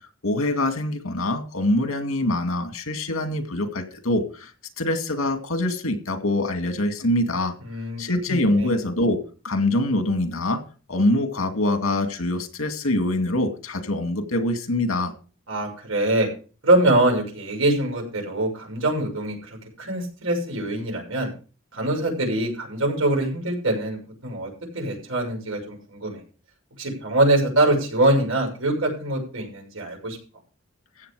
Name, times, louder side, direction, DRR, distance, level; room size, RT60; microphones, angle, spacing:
voice 1, 0.2-4.5 4.8-7.5 8.0-9.2 9.4-10.6 10.9-15.1, left 1 dB, 90° left, 2.3 m, -24 dB
voice 2, 7.6-8.0 8.3-8.7 15.5-16.3 16.6-21.3 21.7-26.2 26.8-30.2, right 1 dB, 75° right, 6.4 m, -24 dB
15.0 x 8.5 x 4.9 m
head